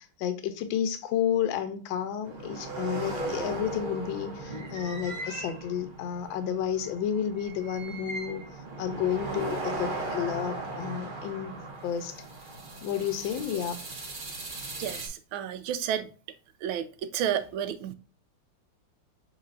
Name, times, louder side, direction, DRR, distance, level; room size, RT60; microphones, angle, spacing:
voice 1, 0.0-8.4 8.8-12.2 12.8-13.8, left 9 dB, 75° left, 1.3 m, -31 dB
sound 1, 2.2-15.1, right 2 dB, 45° right, 0.7 m, -37 dB
voice 2, 14.8-16.1 16.6-16.9 17.1-17.9, right 9 dB, 75° right, 1.3 m, -31 dB
6.5 x 2.8 x 2.4 m
omnidirectional pair, 2.4 m